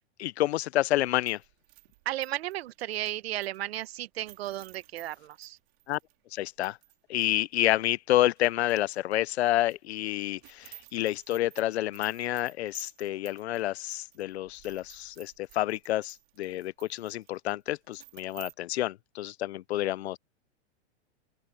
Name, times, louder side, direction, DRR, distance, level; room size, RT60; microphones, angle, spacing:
voice 1, 0.2-1.4 5.9-6.0 6.3-6.8 7.1-20.2, left 15 dB, 65° left, 0.6 m, -29 dB
sound 1, 1.0-7.0 7.2-7.3 7.8-9.1 9.4-18.5, right 27 dB, 45° right, 4.4 m, -54 dB
voice 2, 2.0-5.6, right 14 dB, 60° right, 1.5 m, -34 dB
open air
hypercardioid pair, 150°, 35 cm